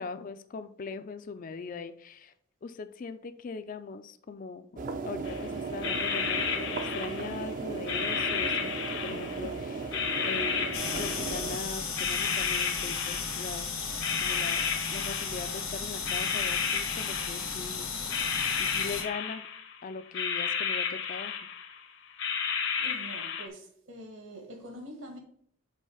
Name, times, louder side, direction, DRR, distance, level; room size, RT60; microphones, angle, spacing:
voice 1, 0.0-2.3 2.6-8.7 9.0-10.0 10.2-13.7 14.2-17.9 18.5-19.4 19.8-21.4, left 4 dB, 40° left, 0.3 m, -40 dB
sound 1, 4.8-11.6, right 4 dB, 35° right, 0.5 m, -36 dB
sound 2, 5.2-5.4 5.8-7.4 7.9-9.5 9.9-11.6 12.0-13.6 14.0-15.7 16.0-17.7 18.0-19.8 20.1-21.8 22.2-23.5, left 6 dB, 55° left, 0.7 m, -32 dB
sound 3, 10.7-19.0, left 5 dB, 90° left, 1.3 m, -35 dB
voice 2, 22.8-25.2, equal, 60° right, 1.5 m, -45 dB
5.4 x 3.8 x 4.9 m
head